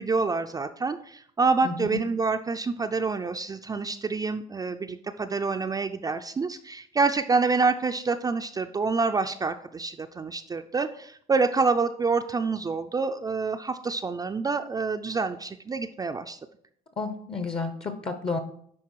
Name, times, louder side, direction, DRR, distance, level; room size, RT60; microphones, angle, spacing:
voice 1, 0.0-16.4, right 4 dB, 20° right, 6 dB, 0.4 m, -27 dB
voice 2, 1.6-2.0 17.0-18.4, left 4 dB, 35° left, 8 dB, 0.7 m, -31 dB
11.0 x 3.9 x 4.6 m, 0.66 s
cardioid pair, 110°, 17 cm